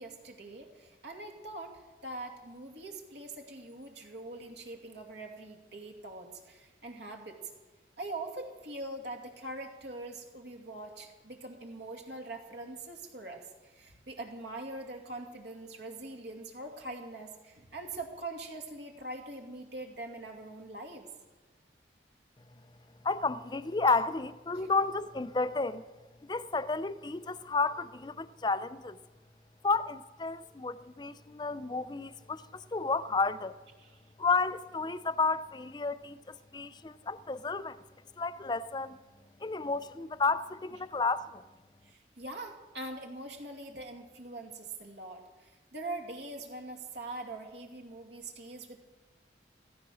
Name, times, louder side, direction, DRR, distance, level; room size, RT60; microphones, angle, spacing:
voice 1, 0.0-7.4 8.0-21.1 24.5-24.7 33.8-34.0 41.8-48.8, right 2 dB, 70° right, 2.4 m, -43 dB
voice 2, 23.0-25.8 26.2-29.0 29.6-33.5 34.2-37.8 38.2-39.0 39.4-41.4, left 4 dB, 25° left, 0.5 m, -31 dB
16.0 x 14.5 x 6.3 m
head